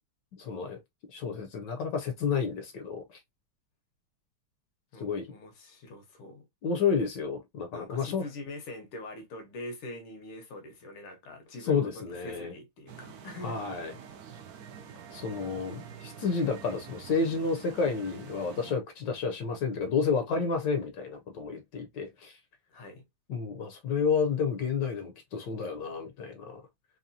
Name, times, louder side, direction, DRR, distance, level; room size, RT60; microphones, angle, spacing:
voice 1, 0.4-0.8 1.1-3.2 5.0-5.3 6.6-8.2 11.6-12.5 13.4-14.0 15.1-22.4 23.3-26.6, left 5 dB, 70° left, 1.2 m, -30 dB
voice 2, 4.9-6.5 7.7-13.6 15.5-16.0 22.7-23.1, left 2 dB, 85° left, 1.9 m, -44 dB
sound 1, 12.9-18.7, right 8 dB, 75° right, 0.8 m, -47 dB
4.1 x 3.0 x 2.6 m
omnidirectional pair, 2.3 m